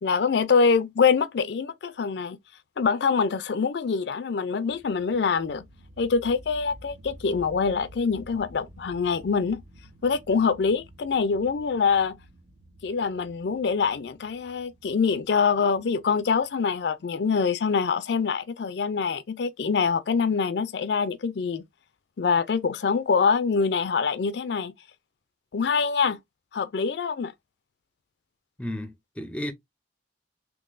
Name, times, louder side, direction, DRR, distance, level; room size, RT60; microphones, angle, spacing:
voice 1, 0.0-2.4 2.8-5.6 6.0-9.6 10.0-12.2 12.8-21.6 22.2-24.7 25.5-26.2 26.5-27.3, left 5 dB, 70° left, 0.4 m, -24 dB
sound 1, 4.7-17.1, right 1 dB, 70° right, 0.9 m, -51 dB
voice 2, 28.6-29.5, left 1 dB, 5° left, 0.5 m, -33 dB
3.7 x 3.0 x 2.5 m
head